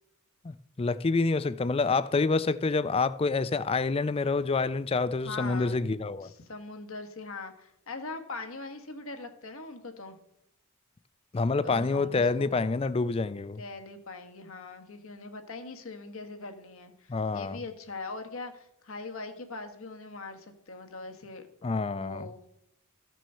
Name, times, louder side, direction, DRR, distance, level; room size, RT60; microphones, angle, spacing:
voice 1, 0.4-6.3 11.3-13.6 17.1-17.6 21.6-22.3, left 3 dB, 25° left, 0.4 m, -27 dB
voice 2, 5.2-5.9 6.2-10.2 11.6-12.5 13.6-22.5, left 3 dB, 65° left, 1.4 m, -41 dB
14.0 x 6.2 x 5.5 m
head